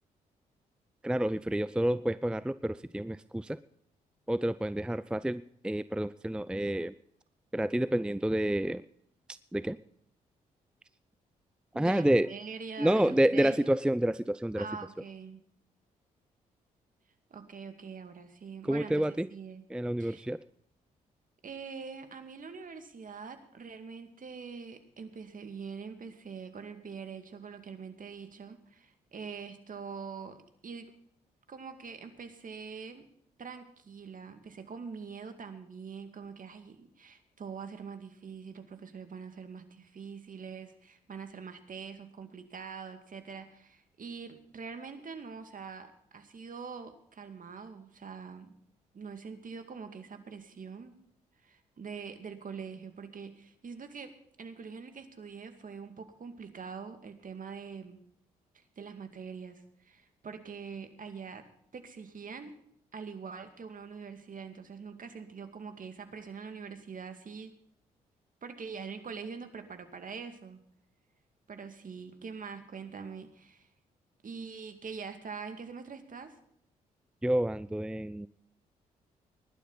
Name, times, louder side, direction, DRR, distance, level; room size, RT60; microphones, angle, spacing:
voice 1, 1.0-3.6 4.3-6.9 7.5-8.8 9.3-9.8 11.7-12.3 12.8-14.7 18.6-19.3 19.7-20.4 77.2-78.3, right 1 dB, 5° right, 16 dB, 0.5 m, -29 dB
voice 2, 11.7-13.8 14.6-15.4 17.3-19.6 20.0-20.3 21.4-30.4 30.6-30.9 31.5-33.1 33.4-48.5 48.9-50.9 51.4-58.0 58.5-61.5 61.7-62.5 62.9-67.5 68.4-70.6 71.5-73.7 74.2-76.4, right 5 dB, 45° right, 7 dB, 2.3 m, -44 dB
20.0 x 11.5 x 4.1 m, 0.69 s
hypercardioid pair, 45°, 18 cm